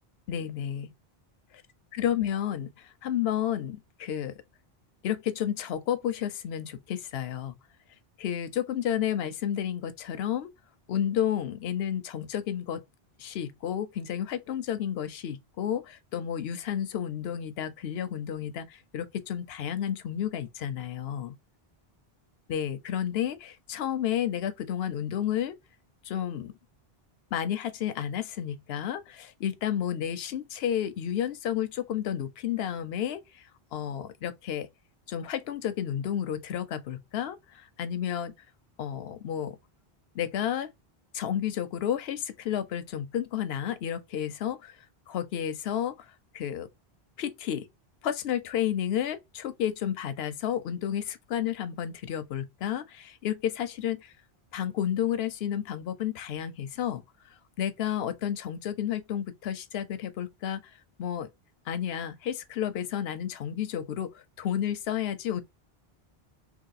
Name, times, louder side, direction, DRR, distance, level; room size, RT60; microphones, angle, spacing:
voice 1, 0.3-0.9 1.9-4.4 5.0-7.6 8.2-10.5 10.9-12.8 13.2-21.4 22.5-25.6 26.0-26.5 27.3-33.4 33.7-34.7 35.1-38.3 38.8-39.6 40.1-40.7 41.1-44.8 45.1-46.7 47.2-47.7 48.0-54.1 54.5-57.0 57.6-60.7 61.0-61.3 61.7-65.4, left 10 dB, 80° left, 0.8 m, -31 dB
3.0 x 2.8 x 4.0 m
omnidirectional pair, 1.0 m